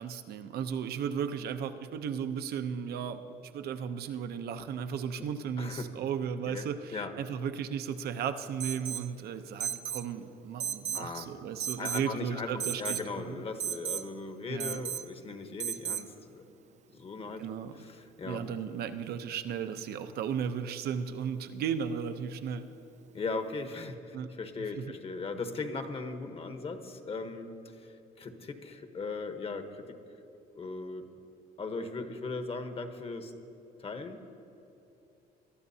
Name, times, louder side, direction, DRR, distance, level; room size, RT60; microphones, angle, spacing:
voice 1, 0.0-13.5 14.5-14.8 17.4-17.8 18.2-22.7 24.1-24.3 24.7-24.9, right 7 dB, 70° right, 9 dB, 0.7 m, -35 dB
voice 2, 5.6-5.9 6.5-6.6 6.9-7.1 10.9-11.3 11.8-16.4 16.9-17.4 17.8-18.4 23.1-30.0 30.5-31.1 31.6-33.3 33.8-34.2, left 3 dB, 35° left, 7 dB, 1.1 m, -38 dB
Alarm, 8.6-9.1 9.6-10.1 10.6-11.1 11.6-12.1 12.6-13.1 13.6-14.1 14.6-15.1 15.6-16.1, right 9 dB, 45° right, 0.4 m, -34 dB
22.5 x 12.0 x 2.8 m, 2.9 s
cardioid pair, 110°, 17 cm